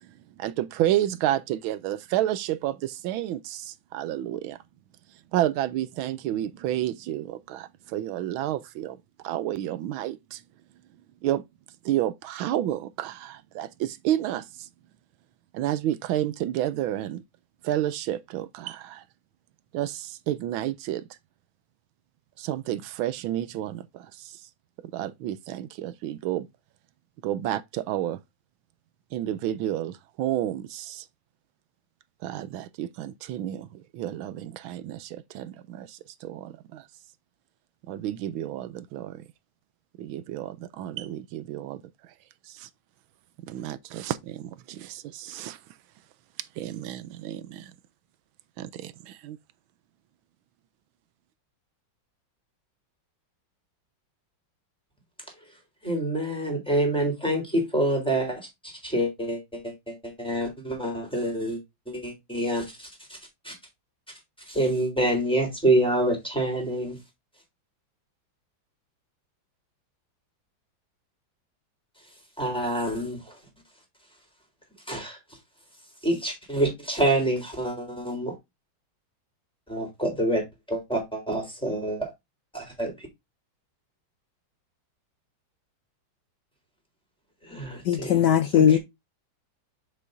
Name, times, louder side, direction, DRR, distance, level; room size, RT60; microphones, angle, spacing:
voice 1, 0.4-4.6 5.3-9.0 9.2-10.4 11.2-11.4 11.8-14.7 15.5-17.2 17.6-19.0 19.7-21.0 22.4-24.4 24.9-26.5 27.2-28.2 29.1-31.1 32.2-36.8 37.9-39.2 40.0-41.8 42.5-42.7 43.5-45.6 46.6-47.7 48.6-49.4, right 12 dB, 80° right, 1.4 m, -30 dB
voice 2, 55.8-61.6 61.9-63.2 63.4-63.5 64.5-67.0 72.4-73.3 74.9-75.2 76.0-78.3 79.7-82.1 82.5-82.9 87.5-88.2 88.5-88.8, right 1 dB, ahead, 3.5 m, -27 dB
voice 3, 87.8-88.8, left 9 dB, 70° left, 1.1 m, -19 dB
7.5 x 6.2 x 2.6 m
omnidirectional pair, 2.2 m